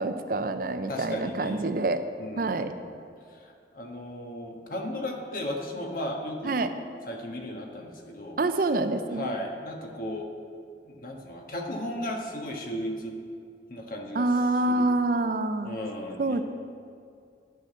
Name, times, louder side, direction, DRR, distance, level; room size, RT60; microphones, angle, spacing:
voice 1, 0.0-2.0 2.4-2.7 6.4-6.7 8.4-9.3 14.1-15.8 16.2-16.4, right 2 dB, 50° right, 9 dB, 0.5 m, -26 dB
voice 2, 0.9-1.7 2.2-3.0 3.3-6.6 7.1-8.4 9.1-10.3 10.8-13.2 13.7-14.3 14.7-14.9 15.6-16.4, left 1 dB, 50° left, 1 dB, 1.4 m, -35 dB
11.0 x 5.9 x 8.0 m, 2.4 s
head